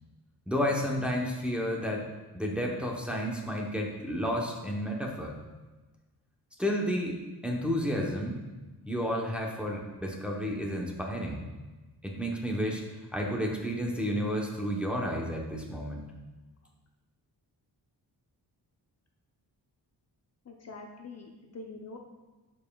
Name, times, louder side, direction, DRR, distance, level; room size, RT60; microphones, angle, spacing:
voice 1, 0.5-2.0 2.3-5.4 6.6-7.2 7.4-8.4 8.9-11.4 12.0-12.8 13.1-16.0, equal, 5° right, -1 dB, 0.9 m, -31 dB
voice 2, 20.4-22.0, left 3 dB, 40° left, 1 dB, 0.7 m, -44 dB
11.5 x 5.4 x 2.3 m, 1.2 s
wide cardioid pair, 155°, 39 cm